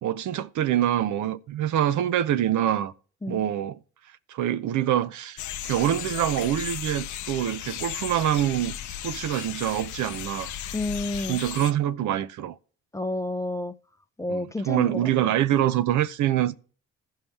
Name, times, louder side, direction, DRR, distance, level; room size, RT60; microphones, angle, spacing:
voice 1, 0.0-2.9 3.3-3.8 4.3-5.4 5.6-8.8 9.0-10.5 11.2-12.6 14.3-16.5, right 11 dB, 75° right, 0.6 m, -25 dB
sound 1, 5.4-11.7, left 11 dB, 75° left, 0.6 m, -35 dB
voice 2, 10.7-11.4 12.9-13.7 14.2-15.3, left 2 dB, 10° left, 0.5 m, -30 dB
15.0 x 5.6 x 3.3 m
cardioid pair, 90°, 30 cm